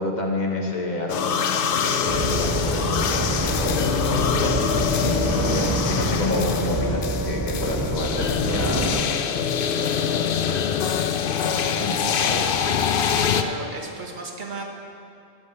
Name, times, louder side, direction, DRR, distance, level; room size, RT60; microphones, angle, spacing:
voice 1, 0.0-10.8 11.2-12.5, left 2 dB, 45° left, 0 dB, 1.2 m, -30 dB
sound 1, 1.1-13.4, left 8 dB, 65° left, 0.7 m, -24 dB
sound 2, 2.1-9.0, right 2 dB, 25° right, 0.4 m, -26 dB
voice 2, 13.0-14.6, right 3 dB, 50° right, 2 dB, 1.2 m, -34 dB
11.5 x 5.2 x 7.9 m, 2.5 s
omnidirectional pair, 1.1 m